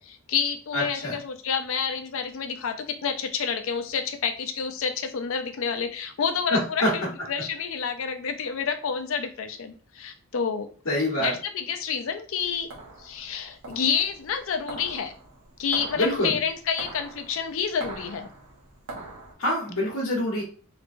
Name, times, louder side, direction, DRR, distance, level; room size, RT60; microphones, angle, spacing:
voice 1, 0.0-7.0 7.3-10.7 11.2-12.7 13.0-15.1 15.6-18.3, left 6 dB, 65° left, 7 dB, 0.4 m, -29 dB
voice 2, 0.7-1.2 6.5-6.9 10.8-11.4 15.9-16.4 19.4-20.4, left 1 dB, 90° left, -4 dB, 1.1 m, -25 dB
sound 1, 12.4-19.3, right 2 dB, 80° right, 1.0 m, -43 dB
3.3 x 3.1 x 2.5 m, 0.42 s
head